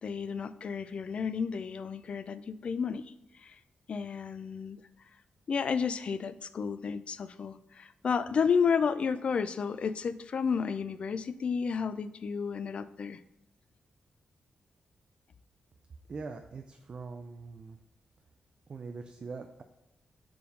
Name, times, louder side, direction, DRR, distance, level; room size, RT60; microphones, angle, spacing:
voice 1, 0.0-3.1 3.4-3.6 3.9-4.8 5.5-13.2, left 6 dB, 45° left, 14 dB, 0.3 m, -32 dB
voice 2, 16.1-17.8 18.7-19.6, right 4 dB, 35° right, 5 dB, 0.4 m, -42 dB
6.9 x 3.6 x 5.3 m, 0.89 s
wide cardioid pair, 160°, 3 cm